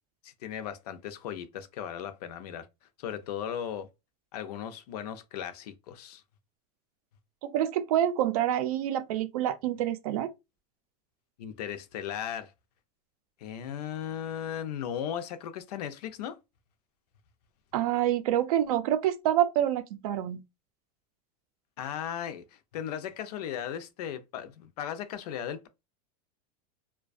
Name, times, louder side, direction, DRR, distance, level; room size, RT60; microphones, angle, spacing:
voice 1, 0.2-2.7 3.0-3.9 4.3-6.2 11.4-12.5 13.4-16.4 21.8-25.7, left 9 dB, 85° left, 0.5 m, -37 dB
voice 2, 7.4-10.3 17.7-20.4, right 11 dB, 65° right, 0.4 m, -27 dB
2.4 x 2.2 x 2.4 m
supercardioid pair, 180°, 20 cm